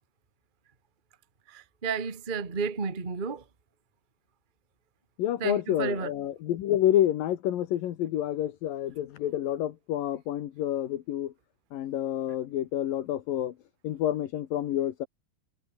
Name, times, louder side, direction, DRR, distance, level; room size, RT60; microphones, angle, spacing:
voice 1, 1.5-3.4 5.4-6.1, right 5 dB, 25° right, 1.0 m, -32 dB
voice 2, 5.2-11.3 11.7-13.6 13.8-15.1, left 12 dB, 70° left, 2.9 m, -28 dB
omnidirectional pair, 4.4 m